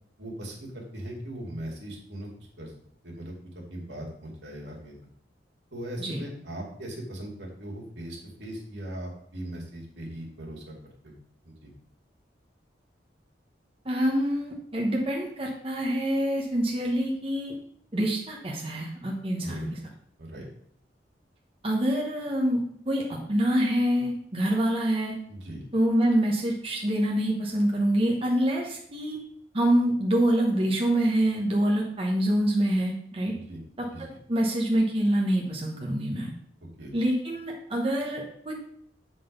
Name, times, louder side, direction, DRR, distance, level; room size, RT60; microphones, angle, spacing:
voice 1, 0.2-2.3 2.6-2.7 3.0-3.3 3.7-4.9 5.7-10.7 11.0-11.1 11.4-11.7 19.4-19.7 20.2-20.5 25.3-25.6 33.3-33.6 33.9-34.0 36.8-36.9, right 1 dB, 75° right, -1 dB, 2.2 m, -39 dB
voice 2, 13.8-17.5 17.9-19.7 21.6-22.6 22.9-23.0 23.3-25.2 25.7-29.2 29.5-33.3 33.8-36.3 36.9-38.5, right 1 dB, 35° right, -2 dB, 1.1 m, -26 dB
7.7 x 4.0 x 5.2 m, 0.66 s
head